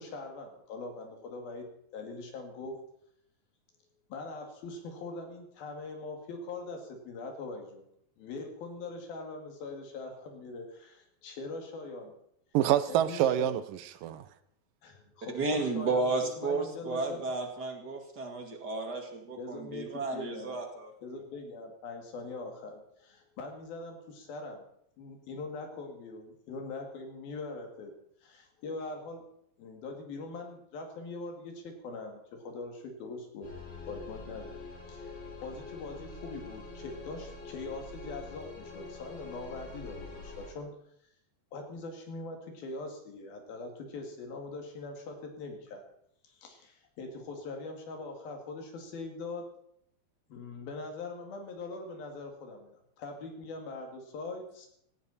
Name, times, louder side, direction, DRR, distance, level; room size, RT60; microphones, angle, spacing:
voice 1, 0.0-1.7 1.9-2.8 4.1-7.8 8.2-12.1 12.9-13.5 14.8-16.1 16.4-17.2 19.4-20.6 21.0-24.7 25.0-27.9 28.2-29.2 29.6-33.5 33.9-34.6 34.9-40.7 41.5-45.8 46.2-49.5 50.3-54.7, left 3 dB, 80° left, 3 dB, 4.3 m, -42 dB
voice 2, 12.5-14.3, right 11 dB, 75° right, 13 dB, 2.3 m, -27 dB
voice 3, 15.3-20.9, right 3 dB, 35° right, 3 dB, 2.0 m, -33 dB
sound 1, 33.4-40.5, left 3 dB, 65° left, 9.0 m, -45 dB
17.0 x 16.0 x 4.3 m, 0.70 s
omnidirectional pair, 4.2 m